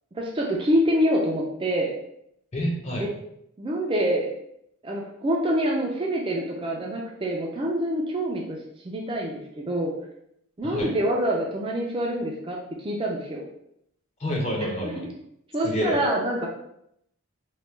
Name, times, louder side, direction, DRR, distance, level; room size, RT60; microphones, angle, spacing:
voice 1, 0.1-1.9 3.0-3.1 3.6-4.3 4.8-8.6 8.8-9.9 10.6-13.4 14.8-14.9 15.5-16.5, equal, 25° right, -2 dB, 0.3 m, -26 dB
voice 2, 2.5-3.1 10.6-10.9 14.2-15.1 15.6-16.0, equal, 30° left, -1 dB, 0.5 m, -28 dB
3.0 x 2.2 x 3.2 m, 0.76 s
head